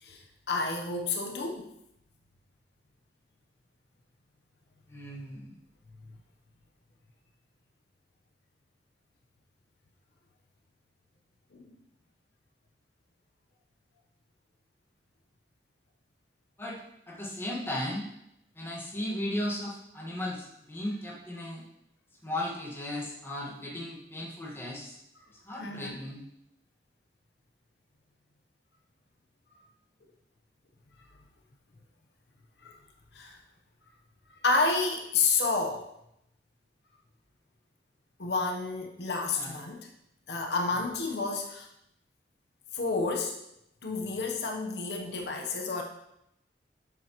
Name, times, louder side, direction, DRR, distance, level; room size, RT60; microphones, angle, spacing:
voice 1, 0.0-1.7 6.0-6.2 11.5-11.7 25.6-26.0 32.6-32.8 33.1-33.4 34.4-35.9 38.2-39.9 40.3-41.7 42.7-43.4 43.8-45.8, left 3 dB, 75° left, 2 dB, 0.9 m, -30 dB
voice 2, 4.9-5.6 16.6-16.8 17.1-18.1 18.5-21.6 22.2-25.0 25.4-26.2 39.4-39.5 40.7-40.9, left 1 dB, 15° left, -4 dB, 1.5 m, -36 dB
7.5 x 7.2 x 3.0 m, 0.80 s
head